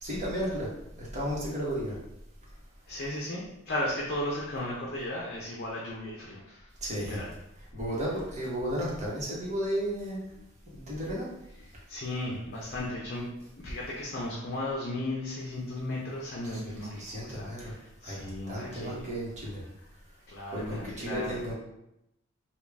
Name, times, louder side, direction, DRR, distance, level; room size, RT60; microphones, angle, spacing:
voice 1, 0.0-0.7 1.0-2.0 6.8-7.2 7.6-10.4 10.7-11.3 16.4-17.7 18.0-19.6 20.5-21.5, equal, 35° right, -6 dB, 1.1 m, -34 dB
voice 2, 2.9-6.7 7.1-7.3 11.9-13.3 13.6-19.1 19.8-19.9 20.3-21.4, left 1 dB, 55° left, -3 dB, 0.6 m, -35 dB
3.6 x 2.3 x 3.4 m, 0.84 s
head